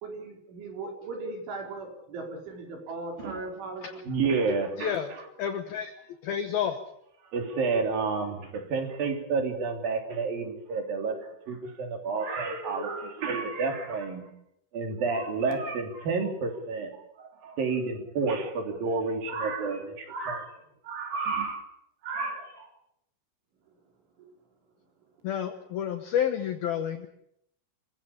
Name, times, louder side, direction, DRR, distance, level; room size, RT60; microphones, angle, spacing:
voice 1, 0.0-4.0, right 3 dB, 65° right, 2 dB, 6.7 m, -38 dB
voice 2, 4.1-4.9 7.3-11.2 11.5-14.3 14.7-16.9 17.2-20.5 20.8-21.6 22.0-22.7, right 4 dB, 50° right, 5 dB, 4.5 m, -30 dB
voice 3, 4.8-5.1 5.4-5.9 6.2-6.8 25.2-27.1, left 9 dB, 70° left, 8 dB, 2.3 m, -30 dB
27.0 x 16.0 x 8.6 m, 0.74 s
omnidirectional pair, 5.8 m